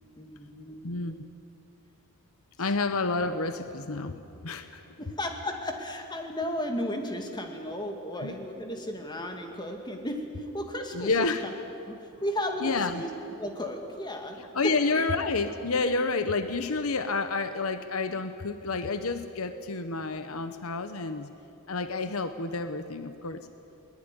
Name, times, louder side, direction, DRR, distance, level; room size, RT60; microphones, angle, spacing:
voice 1, 0.2-0.9 5.0-11.5 11.8-13.1 13.4-14.7, left 1 dB, 20° left, 3 dB, 2.5 m, -34 dB
voice 2, 2.6-5.0 8.2-8.3 10.9-11.4 12.6-13.0 14.5-21.3 21.7-23.4, left 3 dB, 70° left, 10 dB, 1.0 m, -29 dB
21.5 x 20.5 x 9.9 m, 2.7 s
head